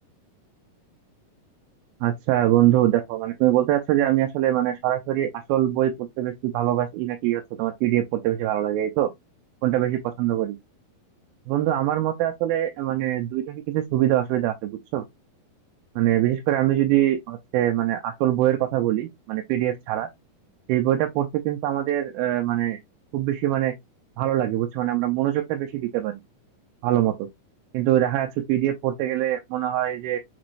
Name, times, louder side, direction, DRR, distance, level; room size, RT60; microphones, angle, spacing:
voice 1, 2.0-9.1 9.6-10.6 11.5-15.1 16.0-20.1 20.7-22.8 23.1-23.7 24.2-26.1 26.8-27.3 27.7-30.2, right 13 dB, 90° right, 2.4 m, -23 dB
6.0 x 3.1 x 2.5 m
omnidirectional pair, 4.2 m